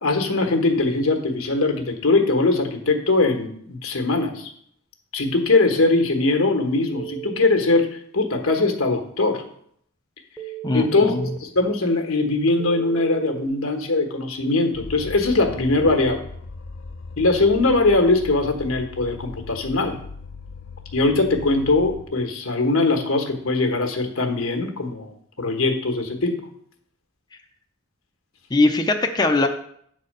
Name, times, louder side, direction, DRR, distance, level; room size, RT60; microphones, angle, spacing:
voice 1, 0.0-4.5 5.1-9.4 10.7-16.2 17.2-20.0 20.9-25.1 25.4-26.4, left 3 dB, 85° left, 4 dB, 1.3 m, -21 dB
Telephone, 6.9-7.4 10.4-11.4 12.6-13.5, right 14 dB, 5° right, 0.8 m, -35 dB
voice 2, 10.6-11.2 28.5-29.5, left 2 dB, 20° left, 3 dB, 0.5 m, -20 dB
sound 1, 14.7-22.0, left 4 dB, 60° left, 0.6 m, -38 dB
8.2 x 4.1 x 6.6 m, 0.66 s
head